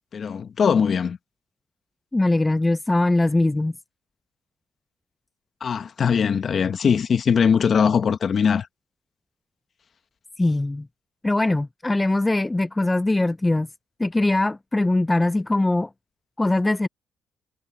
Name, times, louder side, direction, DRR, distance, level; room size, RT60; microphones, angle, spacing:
voice 1, 0.1-1.2 5.6-8.7, left 6 dB, 50° left, 1.5 m, -21 dB
voice 2, 2.1-3.7 10.4-10.9 11.2-13.7 14.0-15.9 16.4-16.9, left 2 dB, 15° left, 0.5 m, -21 dB
cardioid pair, 90°, 0 cm